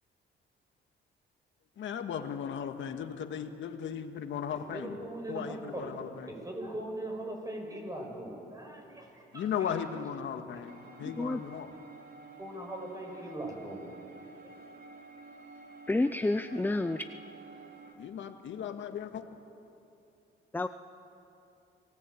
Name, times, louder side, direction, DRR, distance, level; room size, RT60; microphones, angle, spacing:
voice 1, 1.8-5.0 5.3-6.3 9.3-11.7 18.0-19.2, left 8 dB, 70° left, 7 dB, 1.9 m, -36 dB
voice 2, 4.7-5.9 6.2-9.7 12.4-13.9 14.3-14.5, right 1 dB, 15° right, 1 dB, 6.8 m, -40 dB
sound 1, 10.6-17.9, right 3 dB, 55° right, 3.5 m, -51 dB
voice 3, 11.0-11.4 15.9-17.1 20.5-20.7, left 2 dB, 10° left, 10 dB, 0.6 m, -29 dB
28.0 x 19.0 x 8.6 m, 2.8 s
cardioid pair, 90°, 20 cm